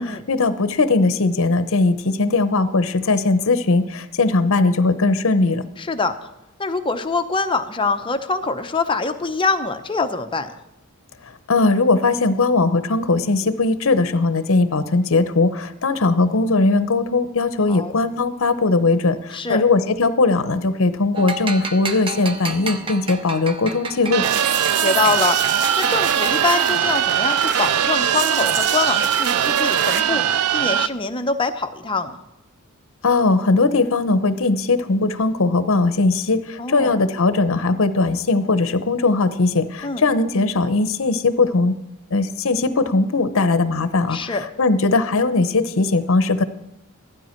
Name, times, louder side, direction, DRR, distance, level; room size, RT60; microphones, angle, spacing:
voice 1, 0.0-5.6 11.2-24.3 33.0-41.8 42.1-46.4, left 3 dB, 60° left, 12 dB, 0.8 m, -19 dB
voice 2, 5.8-6.3 6.6-10.5 17.7-18.0 19.3-19.6 24.7-25.4 25.8-30.2 30.5-32.2 36.6-36.9 39.8-40.0 44.1-44.4, left 3 dB, 25° left, 7 dB, 0.7 m, -24 dB
sound 1, 21.2-26.9, right 3 dB, 25° right, 0.6 m, -31 dB
sound 2, 24.1-30.9, right 9 dB, 75° right, 0.4 m, -20 dB
sound 3, 24.2-30.0, right 5 dB, 50° right, 1.1 m, -29 dB
15.0 x 12.5 x 4.5 m, 0.88 s
head